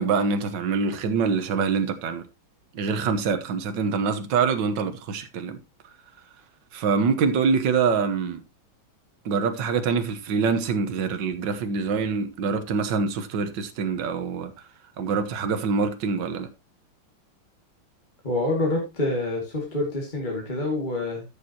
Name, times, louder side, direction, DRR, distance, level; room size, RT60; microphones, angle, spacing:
voice 1, 0.0-2.2 2.7-5.6 6.7-8.4 9.3-14.5 15.0-16.5, right 5 dB, 65° right, 1.7 m, -25 dB
voice 2, 18.2-21.2, left 2 dB, 20° left, 2.2 m, -27 dB
13.5 x 7.0 x 2.9 m
omnidirectional pair, 2.2 m